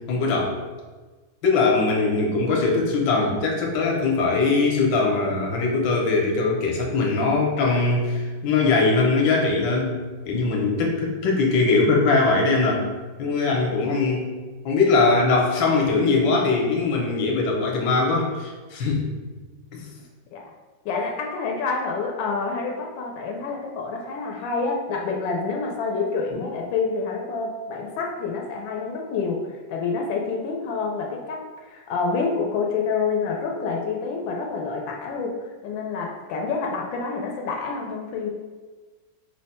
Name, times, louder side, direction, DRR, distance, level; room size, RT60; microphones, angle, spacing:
voice 1, 0.1-0.5 1.4-10.0 10.3-12.8 13.2-14.3 14.6-19.1 19.7-19.9 26.3-26.4, left 3 dB, 70° left, 0 dB, 1.4 m, -21 dB
voice 2, 20.8-38.3, left 4 dB, 85° left, 0 dB, 1.4 m, -28 dB
4.9 x 2.2 x 4.1 m, 1.3 s
omnidirectional pair, 2.0 m